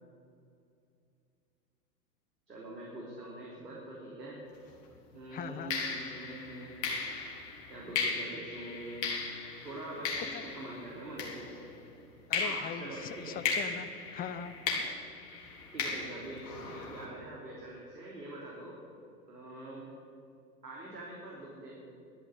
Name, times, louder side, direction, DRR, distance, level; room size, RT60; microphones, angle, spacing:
voice 1, 2.5-4.4 5.1-6.7 7.7-9.1 9.6-11.6 12.4-13.4 15.7-18.8 19.3-19.9 20.6-21.7, right 1 dB, 80° right, -4 dB, 3.5 m, -44 dB
sound 1, 4.5-4.8 5.7-11.9 12.3-17.0, left 4 dB, 50° left, 3.8 m, -37 dB
voice 2, 5.3-5.7 10.2-10.4 12.3-14.5, left 8 dB, 20° left, 12 dB, 0.7 m, -40 dB
12.0 x 10.5 x 9.8 m, 2.4 s
figure-of-eight pair, 100°, 48 cm